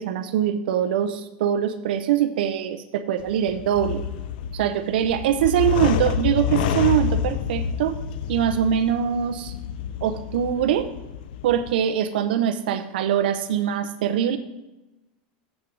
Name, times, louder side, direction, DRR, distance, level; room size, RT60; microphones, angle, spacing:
voice 1, 0.0-4.0 4.5-8.0 8.3-9.5 10.0-10.9 11.4-14.4, right 9 dB, 85° right, 9 dB, 0.5 m, -23 dB
sound 1, 3.2-11.7, left 8 dB, 70° left, 0.6 m, -28 dB
7.3 x 6.1 x 6.1 m, 1.0 s
supercardioid pair, 160°, 5 cm